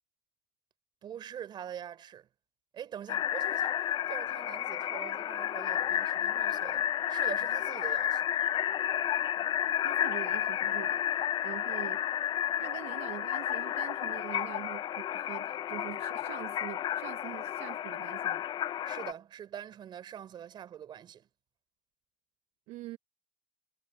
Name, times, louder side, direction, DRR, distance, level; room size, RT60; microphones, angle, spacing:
voice 1, 1.0-2.3 2.7-8.2 18.8-21.3, right 9 dB, 45° right, 3.9 m, -44 dB
sound 1, 3.1-19.1, left 11 dB, 45° left, 0.5 m, -32 dB
voice 2, 9.8-11.1 11.4-12.0 12.6-18.4 22.7-23.0, right 18 dB, 80° right, 1.0 m, -44 dB
supercardioid pair, 105°, 10 cm